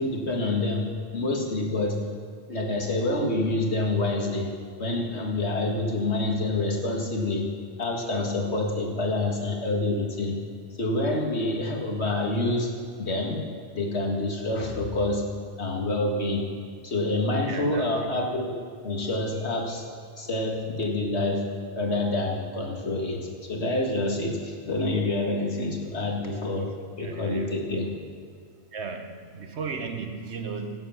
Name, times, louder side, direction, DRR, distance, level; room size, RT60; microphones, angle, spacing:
voice 1, 0.0-2.0 2.5-4.5 4.8-7.4 7.8-10.4 10.8-13.4 13.7-15.2 15.6-16.4 16.8-18.5 18.8-19.9 20.2-21.5 21.8-26.7 27.0-27.9, left 2 dB, 80° left, 0 dB, 2.1 m, -27 dB
voice 2, 17.5-17.9 27.0-27.4 28.7-30.9, right 5 dB, 85° right, 5 dB, 1.3 m, -35 dB
16.0 x 8.1 x 5.8 m, 2.2 s
omnidirectional pair, 1.1 m